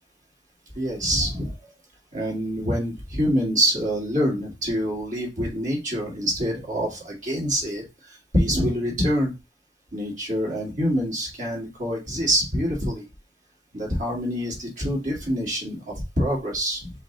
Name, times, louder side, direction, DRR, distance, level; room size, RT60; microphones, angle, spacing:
voice 1, 0.7-1.6 2.1-9.3 9.9-13.0 13.7-16.9, equal, 45° right, -2 dB, 2.0 m, -26 dB
5.1 x 2.4 x 3.9 m, 0.26 s
head